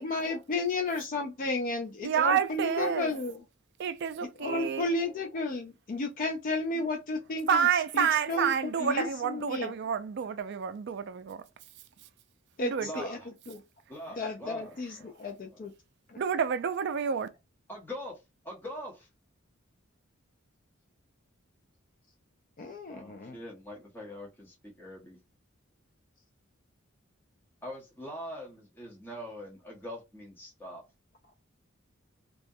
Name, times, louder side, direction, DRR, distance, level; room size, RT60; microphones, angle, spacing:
voice 1, 0.0-3.4 4.2-9.7 12.6-13.2 13.5-13.6 14.2-15.7 16.1-16.2 22.6-23.4, left 2 dB, 40° left, 0.4 m, -33 dB
voice 2, 2.0-3.1 3.8-4.9 7.5-11.4 12.6-13.0 16.2-17.3, right 7 dB, 55° right, 0.3 m, -29 dB
voice 3, 12.8-13.3 13.9-14.7 15.0-15.1 17.7-19.1 22.9-25.2 27.6-30.8, equal, 10° left, 0.7 m, -43 dB
2.3 x 2.1 x 2.6 m
head